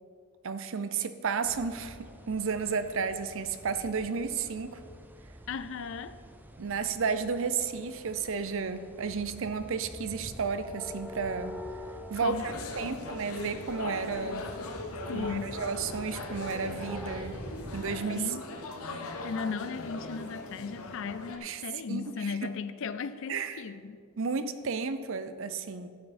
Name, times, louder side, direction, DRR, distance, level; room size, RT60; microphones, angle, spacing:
voice 1, 0.4-4.8 6.6-11.6 12.1-14.5 15.1-17.5 17.7-18.3 21.4-21.6 21.9-22.5 23.3-23.6 24.2-25.9, right 5 dB, 60° right, 11 dB, 0.5 m, -32 dB
sound 1, 1.4-18.0, equal, 10° right, 0.4 m, -46 dB
voice 2, 5.5-6.2 12.2-13.1 15.1-15.6 18.1-18.4 19.2-24.0, left 5 dB, 60° left, 12 dB, 0.4 m, -36 dB
sound 2, 12.3-21.4, left 3 dB, 75° left, 0.9 m, -39 dB
11.0 x 7.8 x 4.2 m, 2.2 s
head